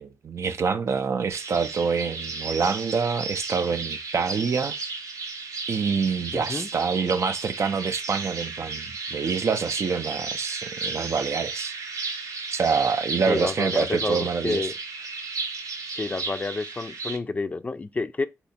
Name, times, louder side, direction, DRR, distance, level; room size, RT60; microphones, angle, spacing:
voice 1, 0.0-4.7 5.7-8.9 9.1-11.8 12.5-14.7, right 5 dB, 55° right, 0.5 m, -26 dB
sound 1, 1.3-17.2, right 4 dB, 85° right, 0.9 m, -34 dB
voice 2, 6.3-6.7 13.3-14.7 15.9-18.3, left 3 dB, 25° left, 0.4 m, -29 dB
4.5 x 2.8 x 4.1 m
wide cardioid pair, 150°, 6 cm